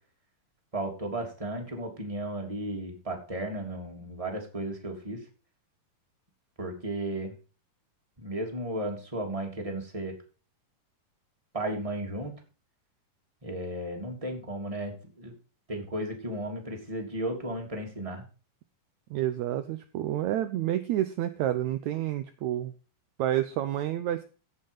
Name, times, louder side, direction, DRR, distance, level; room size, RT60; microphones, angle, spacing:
voice 1, 0.7-5.2 6.6-7.4 8.2-10.1 11.5-12.3 13.4-15.3 15.7-18.2, right 1 dB, 10° right, 2 dB, 3.0 m, -34 dB
voice 2, 19.1-22.7 23.2-24.2, right 12 dB, 75° right, 10 dB, 1.7 m, -29 dB
16.5 x 6.6 x 5.5 m, 0.36 s
omnidirectional pair, 4.2 m